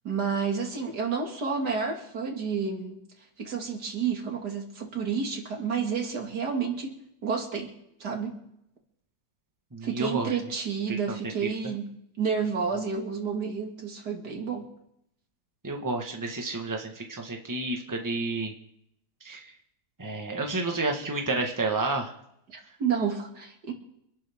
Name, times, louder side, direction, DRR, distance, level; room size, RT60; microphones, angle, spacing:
voice 1, 0.0-3.0 3.4-7.7 8.0-8.4 9.8-11.9 12.2-14.7 22.5-23.7, right 6 dB, 85° right, 2 dB, 2.8 m, -30 dB
voice 2, 9.7-10.4 10.9-11.0 11.4-11.5 15.6-18.5 19.2-19.4 20.0-22.1, right 2 dB, 10° right, 2 dB, 1.4 m, -30 dB
26.0 x 11.5 x 3.7 m, 0.77 s
omnidirectional pair, 1.7 m